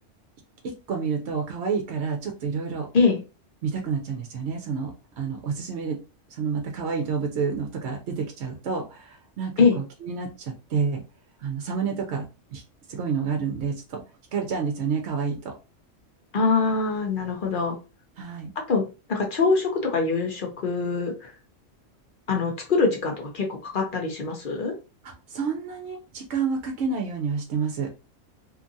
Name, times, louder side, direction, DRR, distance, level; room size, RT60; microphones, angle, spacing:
voice 1, 0.6-2.9 3.6-6.0 6.3-11.0 11.4-12.2 12.5-12.6 12.9-14.0 14.3-15.5 18.2-18.5 25.0-27.9, right 5 dB, 70° right, 2 dB, 0.8 m, -29 dB
voice 2, 16.3-17.8 18.7-18.8 19.1-21.3 22.3-24.7, left 4 dB, 50° left, 2 dB, 0.8 m, -23 dB
2.8 x 2.4 x 2.6 m, 0.31 s
omnidirectional pair, 1.3 m